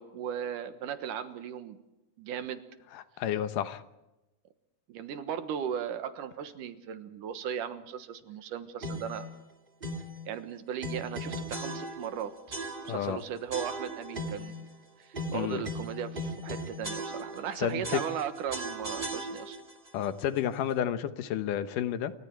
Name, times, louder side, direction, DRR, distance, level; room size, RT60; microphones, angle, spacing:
voice 1, 0.0-1.8 2.2-2.6 4.9-9.3 10.3-12.6 12.9-14.6 15.0-19.6, right 8 dB, 80° right, 10 dB, 2.9 m, -37 dB
voice 2, 2.9-3.8 12.8-13.2 15.3-15.7 17.6-18.0 19.9-22.1, left 10 dB, 80° left, 11 dB, 2.7 m, -31 dB
sound 1, 8.8-9.2 9.8-10.2 10.8-12.2 12.5-13.1 13.5-14.6 15.1-17.5 17.8-19.7, right 1 dB, 20° right, 1.9 m, -37 dB
28.5 x 24.5 x 4.7 m, 0.96 s
omnidirectional pair, 3.7 m